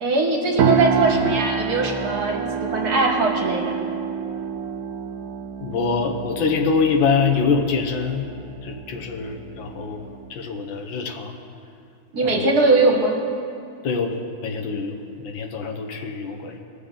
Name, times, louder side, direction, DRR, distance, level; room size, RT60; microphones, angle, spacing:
voice 1, 0.0-3.8 12.1-13.1, right 3 dB, 55° right, 1 dB, 1.6 m, -20 dB
sound 1, 0.6-10.3, right 6 dB, 75° right, 0.8 m, -28 dB
voice 2, 5.6-8.2 8.6-10.0 10.3-11.3 12.2-12.4 13.8-16.6, left 5 dB, 75° left, 3 dB, 1.6 m, -24 dB
20.5 x 6.8 x 3.8 m, 2.5 s
omnidirectional pair, 2.1 m